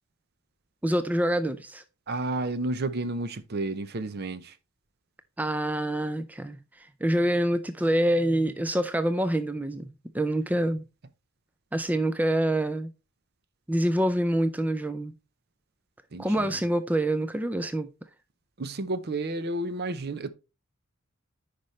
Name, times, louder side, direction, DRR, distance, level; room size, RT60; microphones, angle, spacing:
voice 1, 0.8-1.8 5.4-9.9 10.1-10.8 11.7-12.9 13.7-15.1 16.2-17.9, right 1 dB, 10° right, 0.4 m, -26 dB
voice 2, 2.1-4.5 16.1-16.5 18.6-20.3, right 2 dB, 50° right, 0.7 m, -31 dB
9.8 x 5.2 x 3.2 m
head